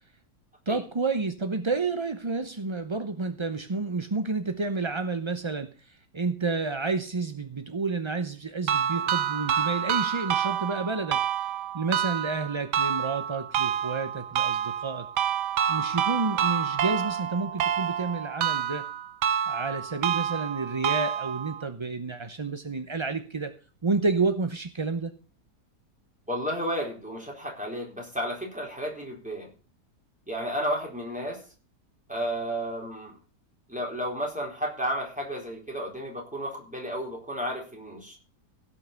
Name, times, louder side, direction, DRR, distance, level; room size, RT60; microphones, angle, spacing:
voice 1, 0.7-11.2 11.7-15.1 15.7-18.9 19.5-23.5 23.8-25.1, right 3 dB, 30° right, 8 dB, 0.5 m, -30 dB
sound 1, 8.7-21.6, right 9 dB, 85° right, 1.5 m, -28 dB
voice 2, 26.3-29.5 30.3-31.4 32.1-33.1 33.7-38.2, equal, 5° right, -2 dB, 4.3 m, -32 dB
16.5 x 5.7 x 6.9 m, 0.37 s
omnidirectional pair, 1.8 m